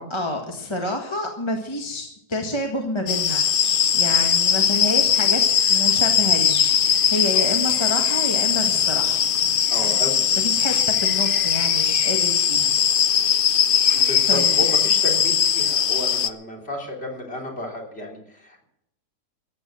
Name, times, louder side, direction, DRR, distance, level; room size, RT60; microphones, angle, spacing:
voice 1, 0.0-5.4 5.7-9.2 9.8-10.0 10.4-13.7 14.3-14.6, left 1 dB, 15° left, 2 dB, 1.6 m, -29 dB
sound 1, 3.1-16.3, left 8 dB, 85° left, 0.4 m, -20 dB
voice 2, 9.7-10.3 13.9-18.6, left 1 dB, 35° left, 0 dB, 3.6 m, -32 dB
15.0 x 9.5 x 7.6 m, 0.79 s
omnidirectional pair, 1.8 m